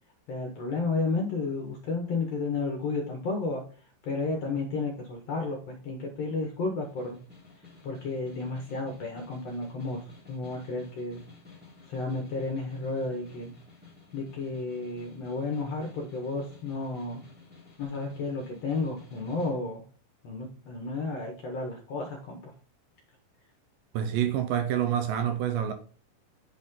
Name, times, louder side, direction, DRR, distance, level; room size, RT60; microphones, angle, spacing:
voice 1, 0.3-3.6 4.0-7.2 7.8-11.2 11.9-13.5 14.1-17.2 17.8-19.9 20.2-22.5, left 3 dB, 65° left, 1.7 m, -32 dB
Snare drum, 6.8-19.6, left 4 dB, 5° right, 1.5 m, -53 dB
voice 2, 23.9-25.7, right 9 dB, 75° right, 2.2 m, -27 dB
8.4 x 4.1 x 3.7 m
omnidirectional pair, 4.3 m